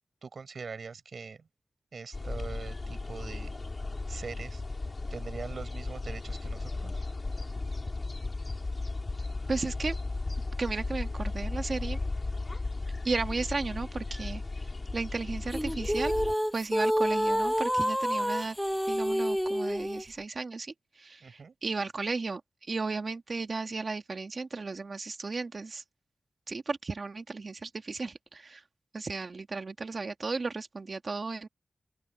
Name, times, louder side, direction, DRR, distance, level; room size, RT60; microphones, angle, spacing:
voice 1, 0.2-1.4 1.9-3.5 4.1-4.6 5.1-7.0 21.2-21.5, right 5 dB, 75° right, 6.9 m, -42 dB
sound 1, 2.1-16.3, left 3 dB, 40° left, 5.0 m, -35 dB
voice 2, 9.5-10.0 10.6-12.0 13.0-16.2 16.5-18.6 18.9-22.4 22.7-25.8 26.5-28.6 28.9-31.5, right 3 dB, 50° right, 1.8 m, -34 dB
sound 2, 15.5-20.0, equal, ahead, 0.8 m, -28 dB
open air
wide cardioid pair, 115°, 0 cm